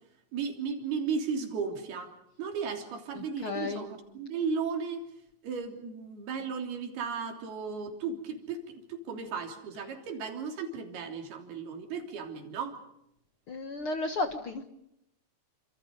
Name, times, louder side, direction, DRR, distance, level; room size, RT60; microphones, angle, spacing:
voice 1, 0.3-2.1 2.4-5.1 5.4-12.8, right 5 dB, 85° right, 4 dB, 5.3 m, -35 dB
voice 2, 3.1-3.9 13.5-14.7, left 3 dB, 55° left, 7 dB, 1.5 m, -33 dB
29.0 x 26.5 x 5.3 m, 0.80 s
omnidirectional pair, 4.3 m